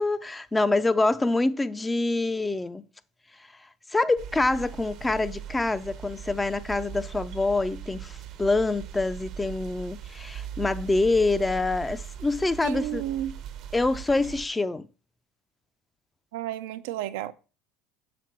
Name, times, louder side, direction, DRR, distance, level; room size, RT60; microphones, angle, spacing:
voice 1, 0.0-2.8 3.9-13.0 13.7-14.9, left 2 dB, 15° left, 0.5 m, -26 dB
sound 1, 4.2-14.5, right 10 dB, 55° right, 0.8 m, -40 dB
voice 2, 12.6-13.3 16.3-17.3, right 13 dB, 80° right, 0.5 m, -32 dB
6.0 x 3.5 x 6.0 m
supercardioid pair, 95°, 0 cm